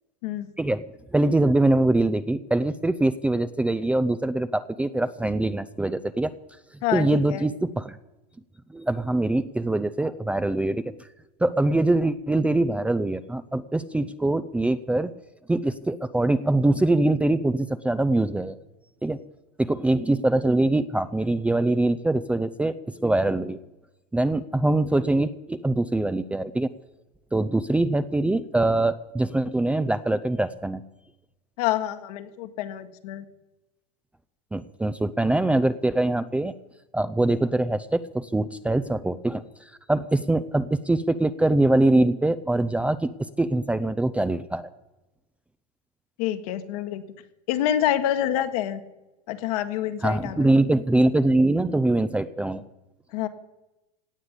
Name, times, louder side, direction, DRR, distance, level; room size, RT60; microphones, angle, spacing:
voice 1, 0.6-6.3 6.9-8.0 8.7-10.9 11.4-15.1 15.5-18.6 19.0-19.2 19.6-23.6 24.1-26.7 27.3-30.8 34.5-36.5 36.9-39.4 39.9-43.1 43.4-44.7 50.0-52.6, right 2 dB, 5° right, 12 dB, 0.5 m, -23 dB
voice 2, 6.8-7.4 31.6-33.2 46.2-47.0 47.5-48.8 49.3-50.5 53.1-53.3, left 11 dB, 65° left, 8 dB, 1.7 m, -27 dB
17.5 x 8.7 x 8.2 m, 1.0 s
hypercardioid pair, 115°, 21 cm